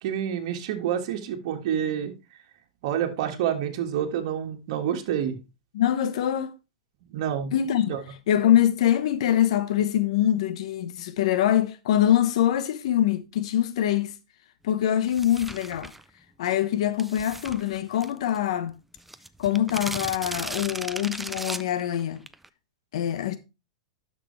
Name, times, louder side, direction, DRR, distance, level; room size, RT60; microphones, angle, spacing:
voice 1, 0.0-2.2 2.8-5.4 7.0-7.5 7.8-8.0, right 9 dB, 60° right, 1.7 m, -28 dB
voice 2, 5.7-6.5 7.5-8.0 8.3-14.1 14.6-15.9 16.4-18.7 19.4-22.2 22.9-23.4, left 11 dB, 70° left, 1.0 m, -24 dB
sound 1, 15.1-16.0 17.0-18.4 18.7-18.8 19.0-22.5, right 1 dB, 5° right, 0.5 m, -36 dB
11.5 x 6.0 x 3.2 m
hypercardioid pair, 125°, 3 cm